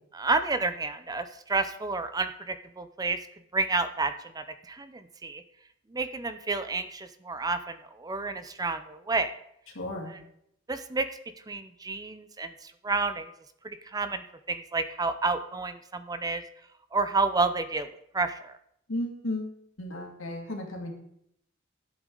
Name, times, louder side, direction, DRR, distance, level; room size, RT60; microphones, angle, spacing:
voice 1, 0.1-3.2 3.5-5.4 5.9-9.3 10.1-10.2 10.7-11.1 11.5-13.3 13.6-16.4 16.9-17.9 18.1-18.5, right 3 dB, 20° right, 10 dB, 0.5 m, -30 dB
voice 2, 9.7-10.1 18.9-20.9, left 1 dB, 85° left, 1 dB, 2.4 m, -34 dB
12.5 x 8.1 x 3.9 m, 0.73 s
head